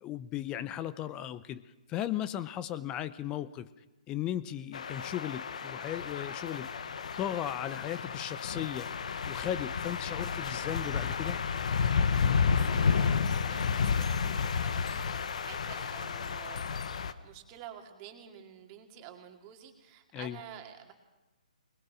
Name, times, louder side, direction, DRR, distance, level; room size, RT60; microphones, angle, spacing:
voice 1, 0.0-3.7 4.1-6.7 7.2-8.9 9.3-11.4 20.1-20.4, left 11 dB, 20° left, 15 dB, 0.6 m, -36 dB
sound 1, 4.7-17.1, left 6 dB, 60° left, 1.1 m, -31 dB
voice 2, 12.5-16.7 17.0-20.9, right 10 dB, 30° right, 4 dB, 2.3 m, -50 dB
21.5 x 20.5 x 6.0 m, 1.1 s
figure-of-eight pair, 140°, 4 cm